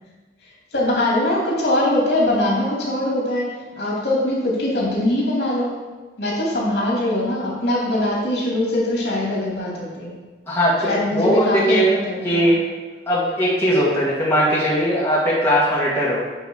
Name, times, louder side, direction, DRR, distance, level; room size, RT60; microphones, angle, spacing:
voice 1, 0.7-5.8 6.2-10.1 10.8-12.6, left 1 dB, 70° left, -4 dB, 2.7 m, -22 dB
voice 2, 10.5-11.9 12.2-12.5 13.1-16.2, equal, 15° left, -7 dB, 1.6 m, -19 dB
9.1 x 4.0 x 6.3 m, 1.3 s
head